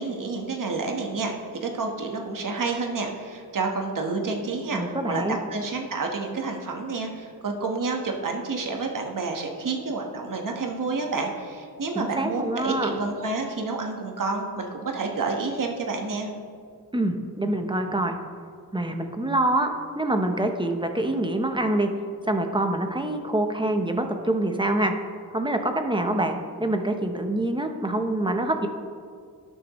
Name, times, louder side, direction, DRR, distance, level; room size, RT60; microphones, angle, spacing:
voice 1, 0.0-1.3 1.6-16.3, right 3 dB, 55° right, 2 dB, 1.3 m, -29 dB
voice 2, 4.7-5.4 11.9-12.9 16.9-18.2 18.7-21.9 22.3-24.9 25.3-28.7, right 1 dB, 10° right, 5 dB, 0.7 m, -25 dB
18.5 x 6.3 x 3.0 m, 2.2 s
wide cardioid pair, 140°, 39 cm